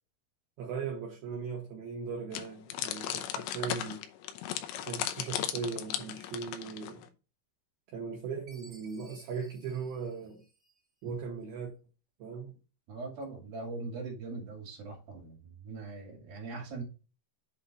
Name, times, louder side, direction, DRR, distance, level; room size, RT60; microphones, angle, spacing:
voice 1, 0.6-4.0 4.9-7.1 7.9-10.4 11.0-11.7 12.2-12.5, right 5 dB, 75° right, 2.3 m, -38 dB
sound 1, 2.3-7.1, left 11 dB, 80° left, 2.7 m, -36 dB
Chime, 8.5-11.0, right 2 dB, 30° right, 1.6 m, -59 dB
voice 2, 12.9-16.8, right 3 dB, 55° right, 3.3 m, -41 dB
8.1 x 3.8 x 4.0 m
omnidirectional pair, 5.9 m